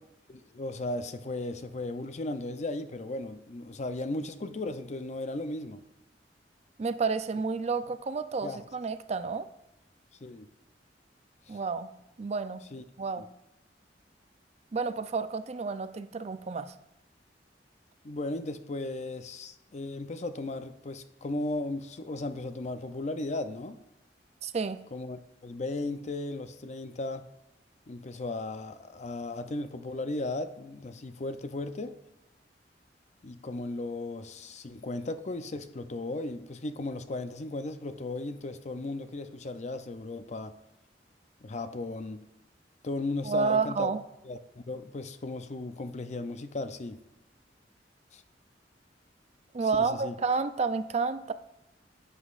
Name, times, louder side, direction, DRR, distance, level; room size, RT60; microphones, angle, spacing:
voice 1, 0.3-5.8 8.4-8.6 10.2-10.5 12.7-12.8 13.2-13.3 18.0-23.8 24.9-27.2 27.9-31.9 33.2-40.5 41.4-42.2 42.8-43.9 44.2-47.0 48.1-48.2 49.7-50.1, left 2 dB, 40° left, 10 dB, 0.5 m, -36 dB
voice 2, 6.8-9.5 11.5-11.9 12.2-12.6 13.0-13.2 14.7-16.7 24.4-24.8 43.2-44.0 49.5-51.3, right 4 dB, 40° right, 12 dB, 0.4 m, -30 dB
11.0 x 8.2 x 2.5 m, 0.91 s
head